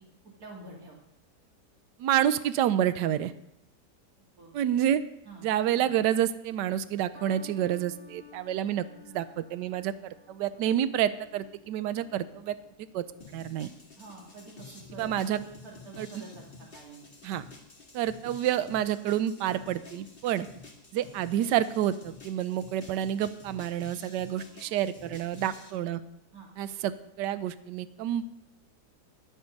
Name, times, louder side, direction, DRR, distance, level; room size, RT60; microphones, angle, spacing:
voice 1, 0.4-1.0 4.4-4.5 5.3-5.5 14.0-16.5 16.7-17.1 20.9-21.0 26.3-26.5, right 3 dB, 55° right, -1 dB, 2.9 m, -47 dB
voice 2, 2.0-3.3 4.5-5.0 5.4-12.5 12.9-13.7 15.0-15.4 16.0-16.2 17.2-17.4 17.9-20.5 20.9-26.0 26.6-28.3, right 11 dB, 80° right, 14 dB, 1.2 m, -29 dB
sound 1, 7.1-13.7 14.5-14.9, left 7 dB, 55° left, 2.6 m, -54 dB
sound 2, 13.2-25.7, left 3 dB, 30° left, 1.8 m, -50 dB
11.5 x 10.0 x 5.2 m, 0.81 s
omnidirectional pair, 1.9 m